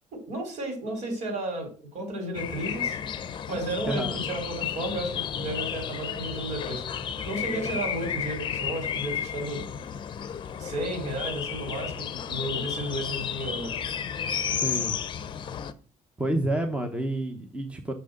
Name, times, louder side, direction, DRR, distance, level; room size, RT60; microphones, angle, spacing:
voice 1, 0.1-3.0 3.5-6.8 7.3-9.6 10.6-13.8, right 1 dB, 60° right, 4 dB, 4.1 m, -33 dB
sound 1, 2.3-15.7, left 8 dB, 35° left, 0.7 m, -32 dB
voice 2, 3.9-4.2 14.6-15.0 16.2-17.9, right 1 dB, 10° right, 5 dB, 0.9 m, -29 dB
6.9 x 6.2 x 6.4 m, 0.40 s
cardioid pair, 150°, 14 cm